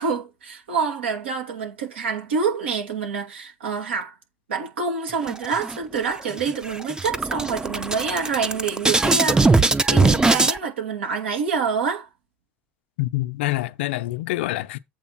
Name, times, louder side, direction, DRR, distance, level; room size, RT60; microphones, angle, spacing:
voice 1, 0.0-4.1 4.5-12.1, right 5 dB, 85° right, 2.6 m, -27 dB
sound 1, 5.3-6.0 6.4-6.5 6.8-10.6, right 3 dB, 10° right, 0.6 m, -20 dB
voice 2, 13.0-14.8, left 17 dB, 70° left, 0.7 m, -26 dB
8.1 x 3.7 x 5.9 m
hypercardioid pair, 80°, 6 cm